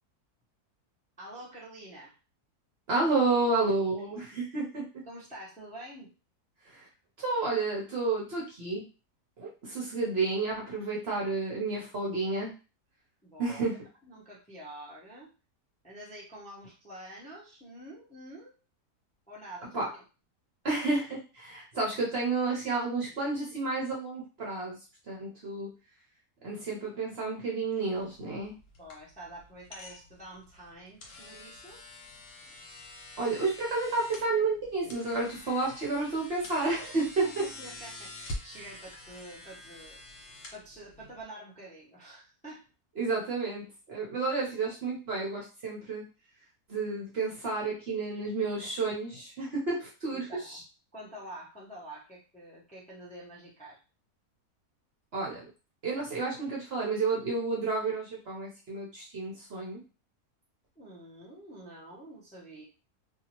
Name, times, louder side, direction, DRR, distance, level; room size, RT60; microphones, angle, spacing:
voice 1, 1.2-2.1 4.2-4.4 5.0-6.1 13.2-13.6 14.0-15.3 15.8-18.5 19.3-19.8 28.8-31.8 37.2-42.6 50.1-50.6 50.9-53.8 60.8-62.6, right 1 dB, 10° left, -6 dB, 0.6 m, -47 dB
voice 2, 2.9-4.8 6.7-6.9 7.2-8.8 9.4-12.5 13.4-13.8 19.7-19.9 20.6-24.8 25.1-25.7 26.4-28.5 33.2-37.3 43.0-46.0 46.7-50.6 55.1-55.4 55.8-59.8, right 3 dB, 50° right, -3 dB, 0.8 m, -31 dB
sound 1, 28.0-41.2, left 1 dB, 70° left, 1.2 m, -46 dB
2.7 x 2.4 x 2.9 m, 0.33 s
omnidirectional pair, 1.6 m